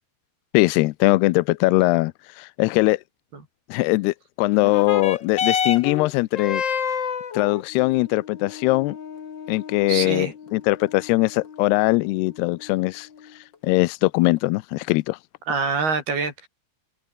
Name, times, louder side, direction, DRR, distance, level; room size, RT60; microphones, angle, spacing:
voice 1, 0.5-3.0 3.7-6.6 7.3-9.0 9.5-13.1 13.4-15.2, left 22 dB, 80° left, 2.5 m, -21 dB
sound 1, 4.6-13.5 14.4-14.5, left 7 dB, 45° left, 1.5 m, -30 dB
voice 2, 9.9-10.3 15.5-16.5, right 4 dB, 65° right, 8.9 m, -25 dB
omnidirectional pair, 4.8 m